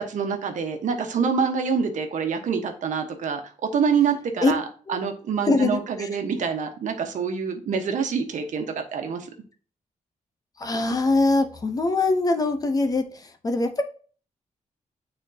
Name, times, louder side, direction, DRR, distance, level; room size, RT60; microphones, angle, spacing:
voice 1, 0.0-3.4 3.7-4.6 4.9-8.7 8.9-9.3, right 6 dB, 70° right, 5 dB, 1.3 m, -26 dB
voice 2, 5.5-6.1 10.6-13.8, left 3 dB, 30° left, 6 dB, 0.9 m, -23 dB
9.1 x 4.4 x 2.8 m, 0.40 s
wide cardioid pair, 155°, 13 cm